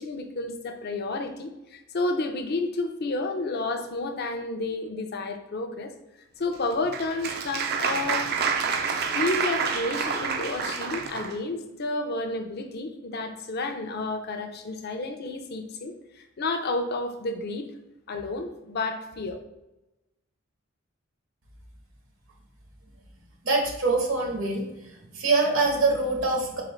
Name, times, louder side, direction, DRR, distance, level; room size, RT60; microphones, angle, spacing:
voice 1, 0.0-5.9 6.4-8.2 9.1-17.7 18.1-19.4, left 2 dB, 50° left, 6 dB, 0.5 m, -31 dB
Applause, 6.5-11.4, right 5 dB, 50° right, 0.4 m, -28 dB
voice 2, 23.4-24.7 25.1-26.6, right 3 dB, 70° right, 1 dB, 1.1 m, -24 dB
4.1 x 3.8 x 3.1 m, 0.96 s
head